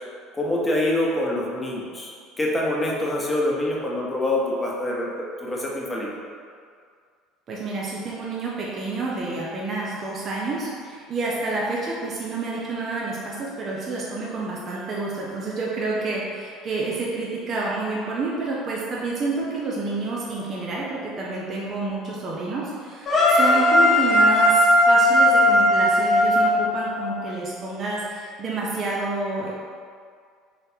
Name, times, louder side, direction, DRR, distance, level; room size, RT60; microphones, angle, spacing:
voice 1, 0.3-2.1 2.4-6.1, left 1 dB, 15° left, -3 dB, 0.9 m, -25 dB
voice 2, 7.5-29.5, right 3 dB, 45° right, -5 dB, 0.7 m, -29 dB
sound 1, 23.1-27.2, left 1 dB, 50° left, 1.1 m, -17 dB
3.9 x 3.3 x 2.8 m, 2.1 s
hypercardioid pair, 75°, 0 cm